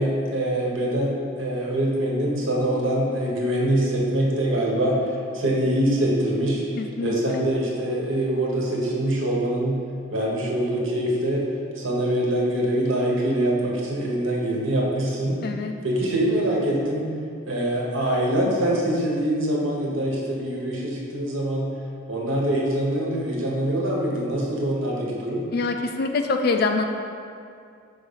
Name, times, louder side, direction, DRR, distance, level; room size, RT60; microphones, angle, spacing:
voice 1, 0.0-5.0 5.3-6.6 7.0-9.8 10.1-11.5 11.7-15.4 15.8-17.1 17.5-21.7 22.1-25.4, right 1 dB, 85° right, -3 dB, 1.2 m, -24 dB
voice 2, 6.8-7.4 15.4-15.7 25.5-26.9, left 3 dB, 50° left, 5 dB, 0.4 m, -25 dB
4.8 x 3.8 x 5.6 m, 2.4 s
head